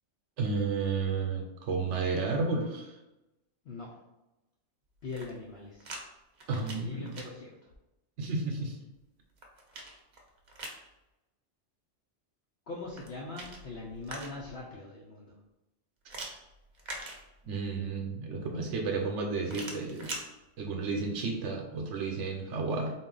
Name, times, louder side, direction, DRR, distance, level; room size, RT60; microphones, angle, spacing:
voice 1, 0.4-3.0 6.5-7.2 8.2-8.8 17.4-20.1 20.6-22.9, right 4 dB, 85° right, 1 dB, 1.0 m, -32 dB
voice 2, 3.6-3.9 5.0-5.9 6.5-7.5 12.7-15.3, left 3 dB, 70° left, -4 dB, 0.9 m, -42 dB
sound 1, 5.0-6.0 6.3-7.3 9.0-10.8 12.8-14.6 16.1-17.7 19.4-20.3, right 2 dB, 45° right, 0.7 m, -43 dB
3.9 x 2.4 x 3.8 m, 0.97 s
omnidirectional pair, 1.2 m